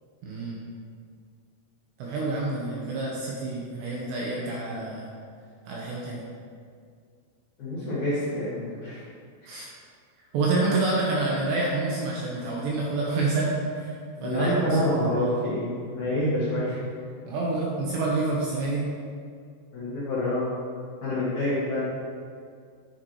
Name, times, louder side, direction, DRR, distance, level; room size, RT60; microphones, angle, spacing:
voice 1, 0.2-0.6 2.0-5.1 5.7-6.2 9.5-9.7 10.3-13.9 14.2-14.8 15.2-15.3 17.3-18.8, right 3 dB, 75° right, -4 dB, 2.7 m, -28 dB
voice 2, 7.6-9.0 9.4-9.5 14.2-16.8 19.7-20.6 21.0-21.8, left 1 dB, 60° left, -11 dB, 2.0 m, -27 dB
10.0 x 7.4 x 3.1 m, 2.2 s
omnidirectional pair, 5.8 m